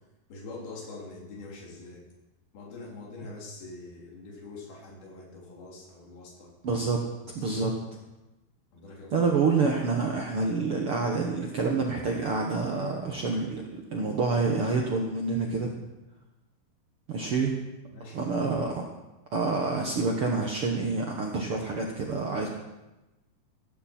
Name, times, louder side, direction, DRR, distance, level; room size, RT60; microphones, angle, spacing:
voice 1, 0.3-2.0 2.5-6.5 8.7-9.3 17.9-18.4, left 3 dB, 70° left, -2 dB, 4.9 m, -44 dB
voice 2, 6.6-7.0 7.3-7.7 9.1-15.7 17.1-17.5 18.1-18.8 19.3-22.5, right 4 dB, 75° right, 0 dB, 1.2 m, -27 dB
16.0 x 14.0 x 4.4 m, 1.0 s
omnidirectional pair, 4.6 m